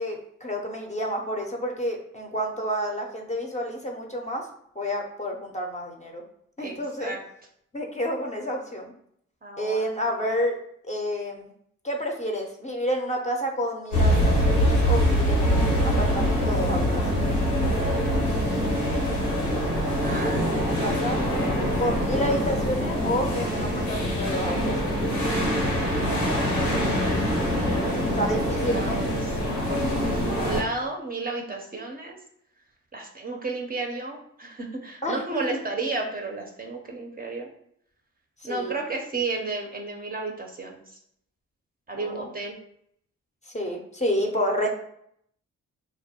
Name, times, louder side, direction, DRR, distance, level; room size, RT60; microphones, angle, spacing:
voice 1, 0.0-4.5 4.8-6.2 6.6-7.2 7.7-8.9 9.6-10.6 10.8-11.5 11.8-17.3 19.8-21.2 21.8-25.0 28.1-29.0 35.0-35.6 38.5-38.8 41.9-42.3 43.5-44.7, equal, 20° left, 1 dB, 0.5 m, -29 dB
voice 2, 9.4-9.8 20.0-20.8 27.6-28.2 28.7-32.2 32.9-37.5 38.4-40.8 41.9-42.6, right 3 dB, 25° right, 1 dB, 0.5 m, -33 dB
sound 1, 13.9-30.6, equal, 90° left, 0.7 m, -24 dB
2.2 x 2.1 x 2.8 m, 0.70 s
supercardioid pair, 50°, 34 cm